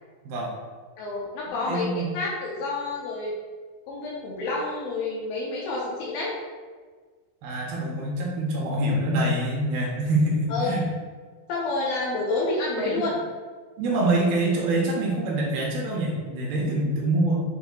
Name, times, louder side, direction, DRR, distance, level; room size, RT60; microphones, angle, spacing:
voice 1, 1.0-3.3 3.9-6.4 10.5-10.7 11.5-13.2, left 2 dB, 80° left, -4 dB, 2.2 m, -29 dB
voice 2, 1.7-2.1 7.4-10.8 12.8-12.9 13.8-17.4, right 1 dB, 80° right, -2 dB, 2.4 m, -25 dB
8.0 x 2.7 x 2.3 m, 1.5 s
omnidirectional pair, 4.7 m